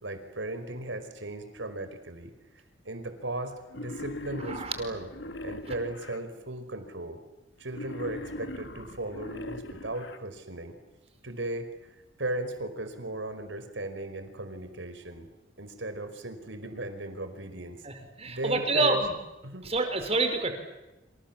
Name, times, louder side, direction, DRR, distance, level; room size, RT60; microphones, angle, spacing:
voice 1, 0.0-2.3 2.8-5.1 5.4-7.2 7.6-10.7 11.2-11.7 12.2-15.3 15.6-17.8 18.2-19.0 19.4-19.6, right 2 dB, 80° right, 8 dB, 5.0 m, -36 dB
Wild animals, 3.7-6.2 7.7-10.2, left 1 dB, 75° left, 2.4 m, -40 dB
voice 2, 17.8-19.1 19.6-20.5, right 2 dB, 35° right, 7 dB, 5.0 m, -27 dB
28.5 x 27.5 x 7.5 m, 0.99 s
head